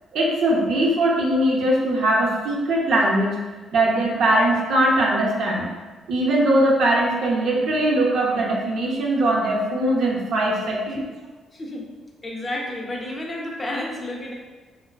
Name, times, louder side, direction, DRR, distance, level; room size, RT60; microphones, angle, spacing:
voice 1, 0.1-3.4 3.7-5.7 6.1-11.0, right 1 dB, 75° right, -3 dB, 0.5 m, -20 dB
voice 2, 11.5-11.9 12.2-14.3, left 1 dB, 30° left, -1 dB, 0.5 m, -31 dB
2.3 x 2.3 x 2.2 m, 1.3 s
cardioid pair, 90°, 0 cm